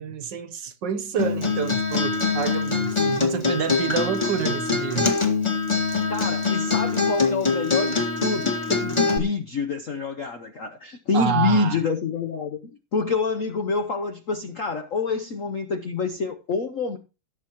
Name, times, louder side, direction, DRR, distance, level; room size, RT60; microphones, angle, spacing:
voice 1, 0.0-5.1 11.1-11.8, right 7 dB, 60° right, 1.6 m, -28 dB
Acoustic guitar, 1.2-9.2, left 4 dB, 15° left, 1.6 m, -23 dB
voice 2, 6.1-12.6 12.9-17.0, left 4 dB, 60° left, 0.8 m, -27 dB
17.0 x 8.0 x 3.0 m
omnidirectional pair, 2.4 m